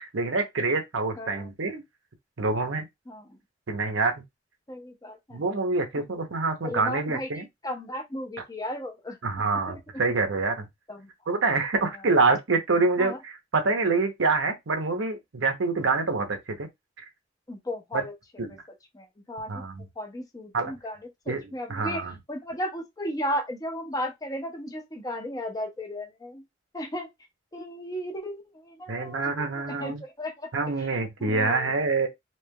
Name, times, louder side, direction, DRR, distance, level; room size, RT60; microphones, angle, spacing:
voice 1, 0.0-1.8 2.4-2.8 3.7-4.1 5.3-7.4 9.2-10.7 11.3-16.7 17.9-18.0 18.4-18.6 19.5-19.8 20.5-20.7 21.3-22.1 28.9-30.0 30.5-32.1, right 3 dB, 80° right, 0.8 m, -26 dB
voice 2, 1.2-1.5 3.1-3.4 4.7-5.4 6.0-6.1 6.6-9.2 10.9-11.1 13.0-13.2 17.5-18.1 18.9-19.6 20.0-21.0 21.3-22.0 22.3-26.4 26.7-27.1 27.5-29.3 29.7-30.5 30.8-31.8, equal, 20° left, 0.7 m, -35 dB
3.1 x 2.9 x 2.2 m
head